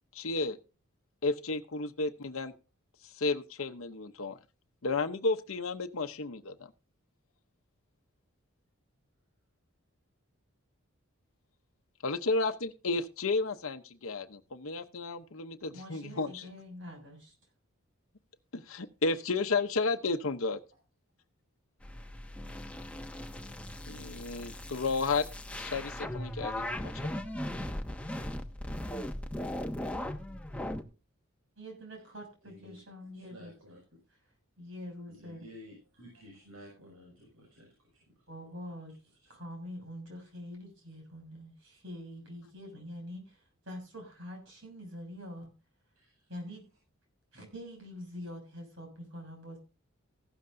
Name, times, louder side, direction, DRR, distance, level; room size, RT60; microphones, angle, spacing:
voice 1, 0.1-0.6 1.2-2.5 3.0-4.4 4.8-6.7 12.0-16.5 18.5-20.6 23.9-25.3 25.6-26.9, left 3 dB, 70° left, 6 dB, 0.9 m, -32 dB
voice 2, 15.7-17.3 31.6-33.5 34.6-35.4 38.3-39.0 39.3-45.5 46.3-46.7 47.3-49.6, equal, 60° right, 3 dB, 6.6 m, -45 dB
sound 1, 21.8-30.8, left 1 dB, 5° left, 0.9 m, -38 dB
voice 3, 32.4-32.8 33.1-34.0 35.1-38.0 39.2-39.3 46.0-46.3, equal, 80° right, -2 dB, 5.9 m, -53 dB
15.5 x 12.5 x 2.7 m, 0.32 s
head